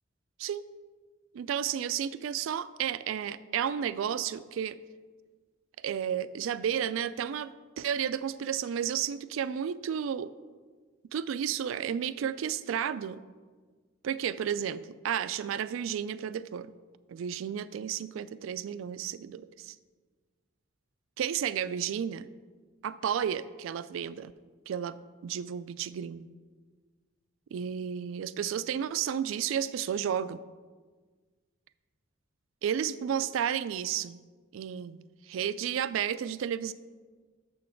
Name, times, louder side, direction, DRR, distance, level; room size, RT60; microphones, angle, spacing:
voice 1, 1.3-4.8 5.8-10.3 11.1-13.2 14.0-16.7 17.1-19.8 21.2-22.3 22.8-24.3 24.7-25.0 25.2-26.3 27.5-30.4 32.6-34.2 34.5-35.0 35.3-36.7, right 8 dB, 80° right, 15 dB, 0.3 m, -32 dB
6.5 x 6.2 x 4.5 m, 1.4 s
head